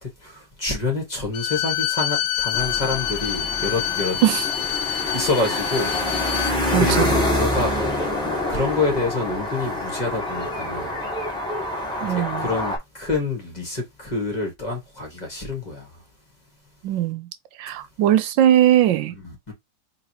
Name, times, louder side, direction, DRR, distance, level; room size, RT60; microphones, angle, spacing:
voice 1, 0.0-4.2 4.8-6.1 6.7-7.7 8.5-11.0 12.1-16.0 19.1-19.5, left 3 dB, 20° left, 1.9 m, -27 dB
Bowed string instrument, 1.3-6.6, left 12 dB, 70° left, 0.9 m, -26 dB
sound 1, 2.5-12.8, left 1 dB, ahead, 2.0 m, -26 dB
voice 2, 6.7-7.3 12.0-12.5 16.8-17.3 17.6-19.1, right 11 dB, 80° right, 1.3 m, -19 dB
4.0 x 3.9 x 3.0 m
omnidirectional pair, 2.1 m